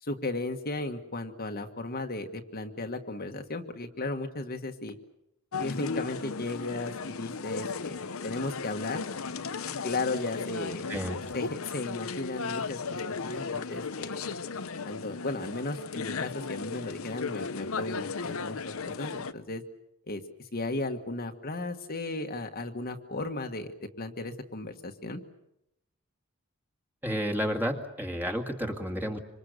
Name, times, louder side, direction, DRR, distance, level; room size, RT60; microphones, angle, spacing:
voice 1, 0.0-5.0 5.6-9.0 9.8-10.9 11.3-12.8 13.1-14.3 14.8-19.6 20.1-25.2, left 2 dB, 45° left, 4 dB, 1.6 m, -35 dB
sound 1, 5.5-19.3, left 5 dB, 70° left, 0.9 m, -36 dB
voice 2, 10.9-11.2 27.0-29.2, equal, 10° right, 3 dB, 2.1 m, -31 dB
26.0 x 25.5 x 6.7 m, 0.84 s
head